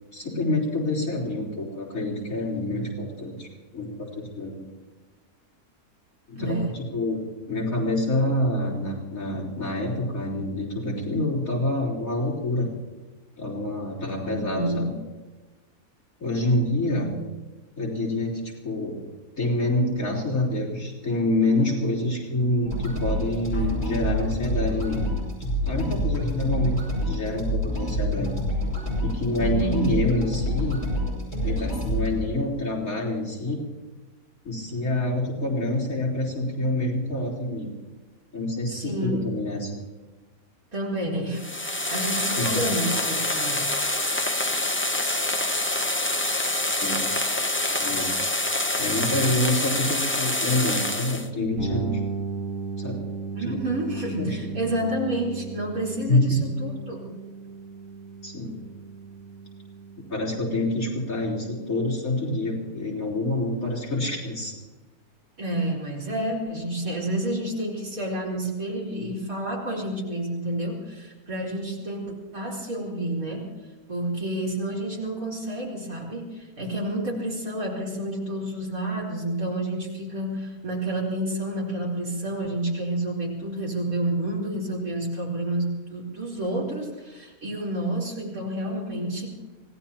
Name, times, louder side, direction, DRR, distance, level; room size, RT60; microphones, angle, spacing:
voice 1, 0.1-3.5 3.7-4.6 6.3-12.7 13.4-14.9 16.2-17.2 17.8-19.0 19.4-25.0 25.6-28.3 29.0-30.8 31.4-33.6 34.4-37.7 38.3-39.7 42.4-42.7 45.0-45.2 46.8-47.0 47.7-48.1 48.8-52.0 52.8-53.1 53.4-53.6 54.2-54.6 56.1-56.4 58.2-58.7 60.1-64.5, left 1 dB, 60° left, -5 dB, 4.4 m, -27 dB
voice 2, 6.4-6.8 14.3-14.9 17.1-17.2 29.4-30.0 38.7-39.4 40.7-43.8 53.3-57.1 65.4-73.5 73.9-89.3, right 1 dB, 65° right, -3 dB, 4.7 m, -29 dB
sound 1, 22.6-32.1, equal, 40° left, 6.2 m, -27 dB
sound 2, 41.3-51.3, left 2 dB, 15° left, 0.5 m, -26 dB
sound 3, 51.6-61.3, right 5 dB, 20° right, 7.5 m, -36 dB
25.5 x 17.5 x 2.9 m, 1.2 s
omnidirectional pair, 1.6 m